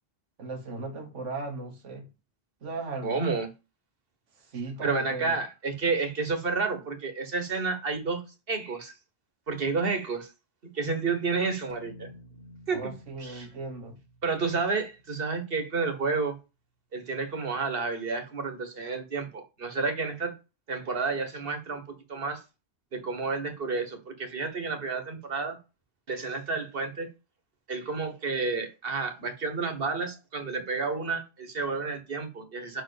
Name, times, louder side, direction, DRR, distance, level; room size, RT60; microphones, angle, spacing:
voice 1, 0.4-2.1 2.6-3.2 4.4-5.4 12.7-14.0, right 3 dB, 90° right, 1.7 m, -37 dB
voice 2, 3.0-3.5 4.8-8.2 8.5-8.9 9.5-10.3 10.7-12.1 12.7-12.9 13.2-13.5 14.2-16.4 16.9-20.3 20.7-21.8 22.1-22.4 22.9-25.6 26.1-27.1 27.7-32.8, right 4 dB, 50° right, 1.6 m, -30 dB
sound 1, 11.7-16.3, left 1 dB, 50° left, 1.1 m, -53 dB
5.8 x 4.7 x 6.6 m
omnidirectional pair, 1.2 m